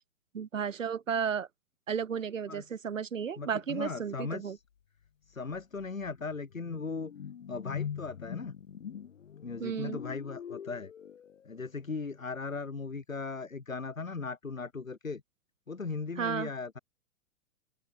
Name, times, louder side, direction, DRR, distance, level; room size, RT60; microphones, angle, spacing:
voice 1, 0.3-1.5 1.9-4.6 9.6-10.0 16.2-16.5, right 7 dB, 70° right, 3.1 m, -33 dB
voice 2, 2.5-2.8 3.4-4.6 5.3-7.1 7.5-8.5 9.4-10.9 11.4-15.2 15.7-16.8, left 4 dB, 85° left, 5.9 m, -38 dB
sound 1, 5.1-5.2 5.5-11.7, left 8 dB, 65° left, 6.3 m, -43 dB
figure-of-eight pair, 115°, 39 cm